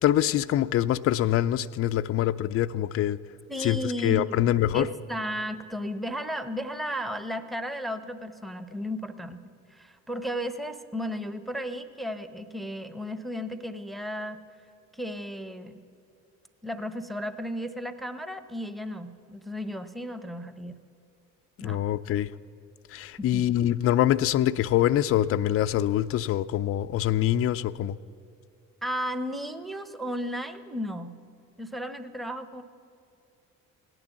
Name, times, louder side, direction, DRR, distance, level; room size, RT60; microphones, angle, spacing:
voice 1, 0.0-3.2 3.6-4.9 21.6-22.3 22.9-28.0, left 12 dB, 35° left, 12 dB, 0.5 m, -24 dB
voice 2, 3.5-4.4 4.7-9.4 9.7-14.4 14.9-15.8 16.6-20.8 21.6-21.8 23.2-23.4 28.8-31.1 31.6-32.6, equal, ahead, 11 dB, 0.9 m, -34 dB
17.0 x 11.0 x 7.1 m, 2.6 s
figure-of-eight pair, 50°, 39 cm